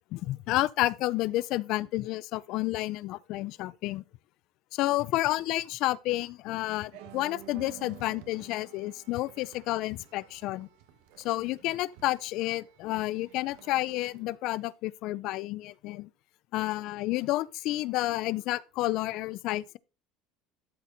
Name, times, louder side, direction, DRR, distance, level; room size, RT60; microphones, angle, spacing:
voice 1, 0.1-4.0 4.7-10.7 11.2-16.1 16.5-19.8, left 17 dB, 55° left, 0.4 m, -30 dB
sound 1, 6.9-14.2, right 13 dB, 75° right, 1.3 m, -52 dB
12.5 x 4.3 x 3.9 m
cardioid pair, 140°, 0 cm